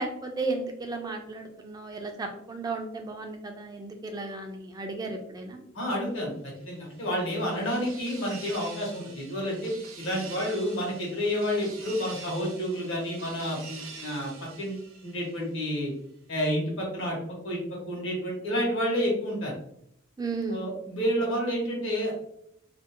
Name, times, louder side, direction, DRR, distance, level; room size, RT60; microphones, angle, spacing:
voice 1, 0.0-5.6 7.5-7.9 20.2-20.7, right 3 dB, 20° right, 4 dB, 0.3 m, -34 dB
voice 2, 5.7-14.3 14.6-15.9 16.3-17.2 17.4-17.6 17.9-19.5 20.5-22.2, equal, 70° left, -2 dB, 1.0 m, -30 dB
sound 1, 6.6-15.7, right 4 dB, 80° right, 0.6 m, -46 dB
2.6 x 2.0 x 2.7 m, 0.72 s
head